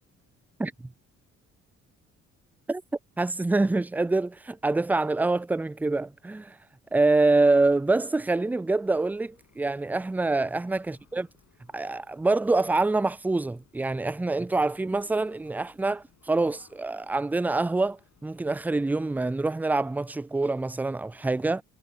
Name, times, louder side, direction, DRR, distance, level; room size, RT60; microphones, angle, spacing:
voice 1, 3.2-6.6 6.9-11.3 11.7-21.6, right 2 dB, 5° right, 0.3 m, -25 dB
sound 1, 8.7-19.0, left 9 dB, 60° left, 7.6 m, -64 dB
cardioid pair, 90°, 30 cm